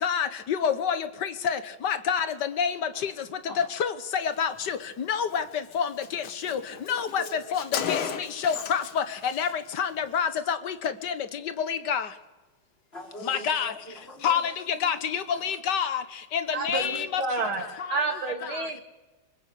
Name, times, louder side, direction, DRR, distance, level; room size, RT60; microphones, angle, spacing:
voice 1, 0.0-1.6 1.8-2.7 3.0-3.1 3.8-3.9 4.2-4.8 5.1-5.4 5.7-6.6 6.9-7.2 7.5-7.6 7.9-8.0 8.4-9.0 9.4-9.5 9.8-10.7 11.0-11.1 11.7-12.0 13.3-13.7 14.2-14.4 14.8-16.0 16.3-17.2, left 7 dB, 60° left, 1.8 m, -27 dB
Car, 5.3-5.4 5.7-5.8 6.0-9.0 9.2-9.5, left 8 dB, 85° left, 2.2 m, -34 dB
voice 2, 6.9-7.4 7.7-8.6 12.9-14.4 14.8-14.9 15.3-15.5, left 1 dB, 30° left, 4.9 m, -43 dB
voice 3, 16.5-18.8, right 3 dB, 75° right, 3.6 m, -30 dB
26.5 x 25.0 x 8.5 m
omnidirectional pair, 2.3 m